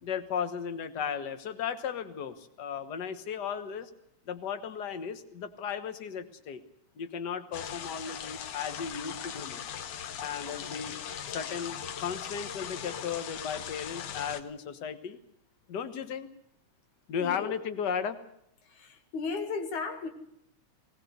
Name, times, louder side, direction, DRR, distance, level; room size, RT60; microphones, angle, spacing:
voice 1, 0.0-3.9 4.3-6.6 7.0-9.7 10.2-10.9 11.3-15.2 15.7-16.3 17.1-18.2, left 7 dB, 50° left, 11 dB, 1.4 m, -35 dB
sound 1, 7.5-14.4, left 8 dB, 65° left, 1.7 m, -39 dB
voice 2, 17.2-17.5 18.6-20.1, left 4 dB, 80° left, 7 dB, 3.4 m, -35 dB
20.0 x 18.5 x 8.1 m, 0.75 s
omnidirectional pair, 3.4 m